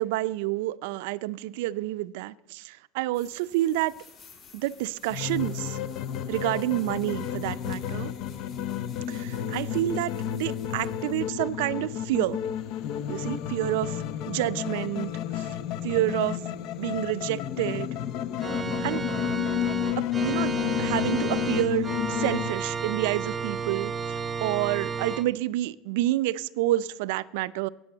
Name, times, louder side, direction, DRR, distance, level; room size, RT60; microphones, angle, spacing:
voice 1, 0.0-3.9 4.5-5.8 6.3-8.1 9.1-12.4 13.1-15.5 15.8-16.4 16.8-17.9 18.8-19.0 20.0-27.7, right 16 dB, 85° right, 17 dB, 0.5 m, -29 dB
sound 1, 3.1-11.3, left 5 dB, 35° left, 4.3 m, -54 dB
sound 2, 5.1-22.5, left 10 dB, 55° left, 0.7 m, -31 dB
Organ, 18.4-25.2, right 5 dB, 20° right, 0.8 m, -32 dB
15.0 x 9.1 x 7.7 m, 0.96 s
cardioid pair, 145°, 0 cm